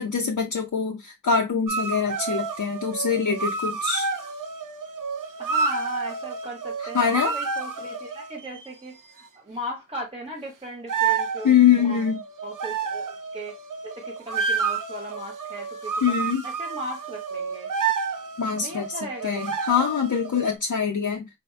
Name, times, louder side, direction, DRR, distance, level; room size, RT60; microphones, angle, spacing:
voice 1, 0.0-4.1 6.9-7.4 11.4-12.2 16.0-16.4 18.4-18.9 19.2-21.3, left 7 dB, 60° left, 0.6 m, -23 dB
sound 1, 1.7-8.6 10.9-20.6, right 5 dB, 65° right, 0.6 m, -30 dB
voice 2, 5.4-12.0 12.4-13.6 13.8-16.1 16.4-17.7 18.6-19.6, equal, 15° right, 0.8 m, -37 dB
4.1 x 2.5 x 2.3 m
wide cardioid pair, 55°, 34 cm